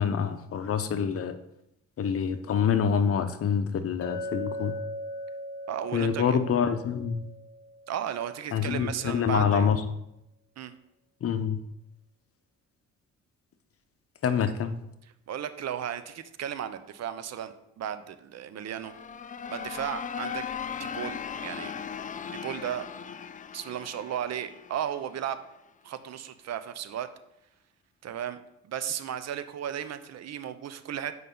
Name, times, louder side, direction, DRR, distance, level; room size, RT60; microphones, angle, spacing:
voice 1, 0.0-1.4 2.0-4.8 5.9-7.2 8.5-9.8 11.2-11.6 14.2-14.7, left 7 dB, 50° left, 9 dB, 0.8 m, -26 dB
Chink clink, 4.0-8.2, left 1 dB, 85° left, 0.8 m, -39 dB
voice 2, 5.7-6.4 7.9-9.7 10.6-10.7 15.3-18.9 19.5-20.5 20.8-21.7 22.3-22.9 23.5-25.4 25.8-27.1 28.0-31.2, right 9 dB, 60° right, 12 dB, 0.7 m, -35 dB
sound 1, 18.6-25.4, left 7 dB, 25° left, 0.4 m, -38 dB
7.7 x 5.4 x 3.8 m, 0.81 s
cardioid pair, 90°, 30 cm